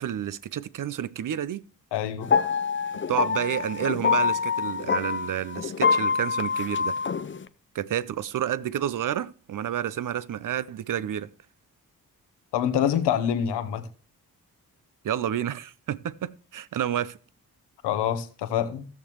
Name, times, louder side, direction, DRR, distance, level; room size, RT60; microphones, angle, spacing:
voice 1, 0.0-1.6 3.1-7.0 7.7-11.3 15.0-17.2, right 10 dB, 55° right, 0.6 m, -30 dB
voice 2, 1.9-2.3 12.5-13.8 17.8-18.8, left 9 dB, 85° left, 1.0 m, -26 dB
sound 1, 2.2-7.4, left 6 dB, 30° left, 0.6 m, -25 dB
15.5 x 6.6 x 3.0 m
supercardioid pair, 45°, 40 cm